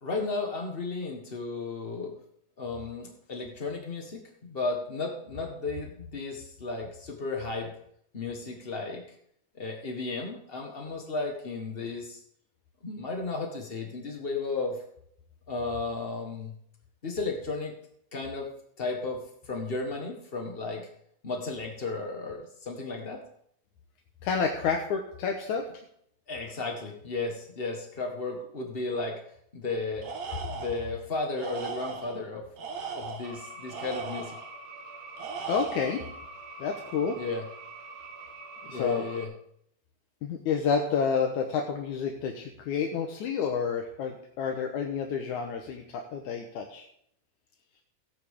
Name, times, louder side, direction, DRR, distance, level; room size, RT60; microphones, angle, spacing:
voice 1, 0.0-2.1 2.6-7.7 8.1-9.2 9.6-12.2 12.8-14.8 15.5-16.5 17.0-17.7 18.1-18.5 18.8-20.9 21.2-23.2 26.3-29.2 29.5-30.1 30.5-32.5 32.9-34.3 37.2-37.4 38.7-39.3, left 3 dB, 55° left, 1 dB, 0.6 m, -34 dB
voice 2, 24.2-25.6 35.5-36.0 36.6-37.2 38.7-39.0 40.2-46.9, left 6 dB, 75° left, 3 dB, 2.4 m, -29 dB
Tools, 30.0-30.9 31.4-32.2 32.6-34.5 35.2-36.1, right 5 dB, 65° right, 2.7 m, -38 dB
sound 1, 33.2-39.2, right 3 dB, 85° right, 3.2 m, -45 dB
17.0 x 9.2 x 3.6 m, 0.70 s
omnidirectional pair, 3.5 m